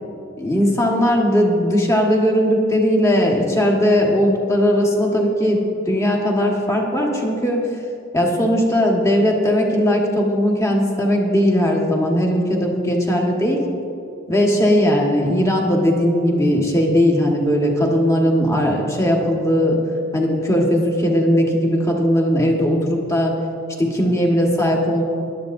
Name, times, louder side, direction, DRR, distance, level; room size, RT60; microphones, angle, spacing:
voice 1, 0.4-5.6 5.9-7.6 8.1-13.6 14.3-19.8 20.1-23.3 23.8-25.0, equal, 15° left, -1 dB, 1.4 m, -18 dB
20.5 x 12.0 x 2.6 m, 2.7 s
head